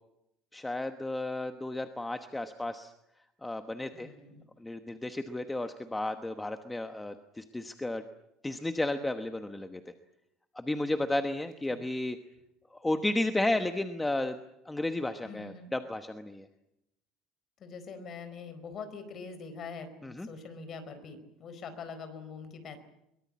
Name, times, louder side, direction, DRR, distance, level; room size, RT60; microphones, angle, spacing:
voice 1, 0.5-2.9 3.4-4.1 4.6-8.0 8.4-9.8 10.5-12.2 12.8-14.4 14.7-16.5 20.0-20.3, left 2 dB, 5° left, 8 dB, 1.1 m, -33 dB
voice 2, 3.9-4.5 11.7-11.9 15.2-15.7 17.6-22.8, left 5 dB, 35° left, 10 dB, 4.3 m, -44 dB
23.0 x 22.5 x 8.6 m, 0.82 s
cardioid pair, 160°, 0 cm